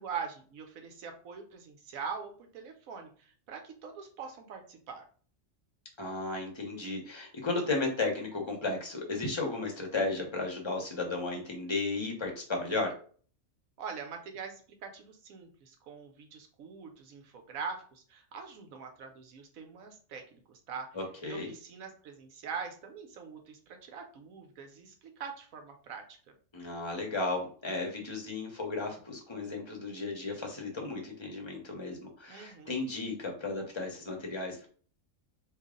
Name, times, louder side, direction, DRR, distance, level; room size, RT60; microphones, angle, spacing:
voice 1, 0.0-5.1 13.8-21.0 21.2-26.3 32.3-32.8, right 6 dB, 90° right, 5 dB, 1.2 m, -43 dB
voice 2, 6.0-12.9 20.9-21.5 26.5-34.7, left 3 dB, 25° left, 1 dB, 0.7 m, -34 dB
3.2 x 2.4 x 3.7 m, 0.43 s
omnidirectional pair, 1.4 m